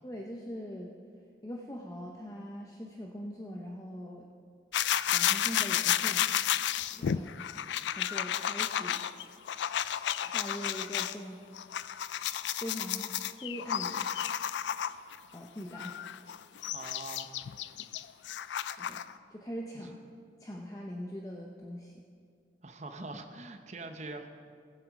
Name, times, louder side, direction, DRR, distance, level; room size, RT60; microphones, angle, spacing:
voice 1, 0.0-0.9 1.4-4.3 5.1-6.3 6.9-7.3 7.9-9.1 10.2-11.4 11.8-11.9 12.2-13.2 13.4-14.1 15.3-16.0 18.6-19.0 19.3-20.1 20.4-22.0, equal, 20° left, -1 dB, 0.7 m, -42 dB
sound 1, 4.7-11.1 11.5-15.2 15.7-19.1, left 10 dB, 85° left, 0.4 m, -32 dB
voice 2, 16.7-17.4 19.8-19.9 22.6-24.3, right 2 dB, 40° right, 7 dB, 0.8 m, -43 dB
17.0 x 7.7 x 5.2 m, 2.2 s
head